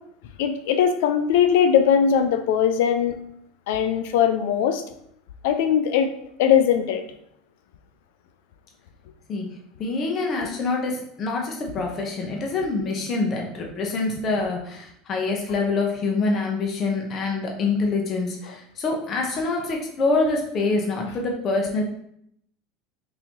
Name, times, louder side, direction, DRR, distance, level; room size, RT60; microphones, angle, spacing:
voice 1, 0.4-3.2 3.7-4.8 5.4-6.1 6.4-7.0, left 8 dB, 80° left, 8 dB, 0.3 m, -20 dB
voice 2, 9.8-21.8, left 3 dB, 35° left, 0 dB, 0.8 m, -25 dB
3.9 x 2.7 x 2.9 m, 0.71 s
supercardioid pair, 125°, 0 cm